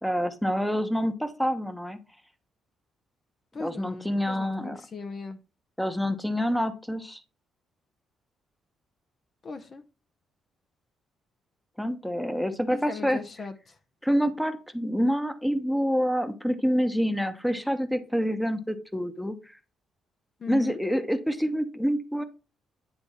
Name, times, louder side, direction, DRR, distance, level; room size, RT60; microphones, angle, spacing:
voice 1, 0.0-2.0 3.6-4.8 5.8-7.2 11.8-13.2 14.0-19.6 20.5-22.2, equal, 5° left, 0.9 m, -27 dB
voice 2, 3.5-5.4 9.4-9.8 12.7-13.8 20.4-20.8, left 4 dB, 45° left, 0.7 m, -38 dB
9.7 x 3.4 x 4.2 m
cardioid pair, 90°, 0 cm